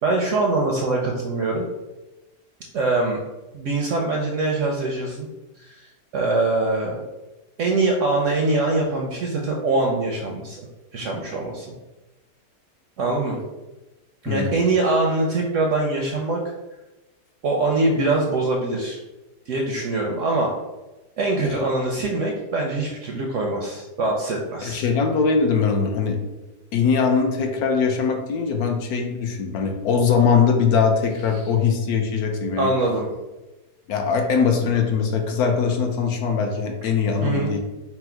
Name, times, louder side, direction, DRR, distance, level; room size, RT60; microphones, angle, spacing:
voice 1, 0.0-1.7 2.7-3.2 3.5-5.3 5.6-7.0 7.6-10.6 10.9-11.7 13.0-13.4 14.2-16.4 17.4-19.0 19.5-20.5 21.2-24.8 32.6-33.1 37.2-37.5, right 2 dB, 70° right, 0 dB, 0.7 m, -23 dB
voice 2, 14.3-14.6 21.4-21.6 24.6-26.2 26.7-32.7 33.9-37.6, left 5 dB, 70° left, 3 dB, 1.0 m, -21 dB
4.4 x 2.1 x 4.3 m, 1.1 s
omnidirectional pair, 1.8 m